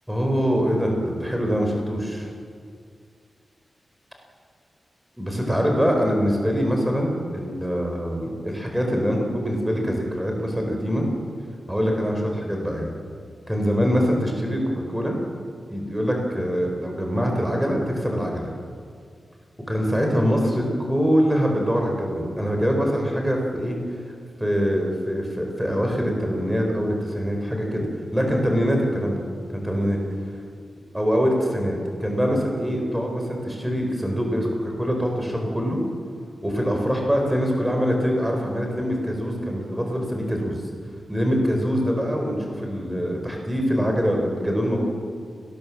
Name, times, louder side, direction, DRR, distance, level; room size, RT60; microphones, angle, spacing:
voice 1, 0.1-2.3 5.2-11.0 11.7-12.9 13.5-15.1 15.7-18.5 19.7-23.8 24.4-27.9 28.1-29.2 29.5-30.0 30.9-31.7 32.0-35.8 36.4-40.6 41.1-44.8, equal, 5° right, 1 dB, 4.5 m, -24 dB
29.5 x 19.0 x 7.4 m, 2.2 s
wide cardioid pair, 135°, 0 cm